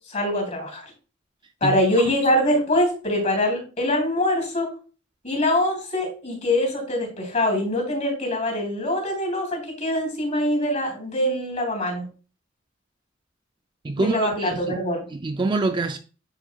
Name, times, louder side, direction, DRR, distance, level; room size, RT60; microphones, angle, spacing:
voice 1, 0.1-0.8 1.6-4.7 5.2-12.0 14.0-15.0, left 1 dB, 40° left, 3.5 m, -23 dB
voice 2, 13.8-14.7 15.1-16.0, right 3 dB, 25° right, 0.4 m, -25 dB
10.0 x 4.9 x 2.4 m
head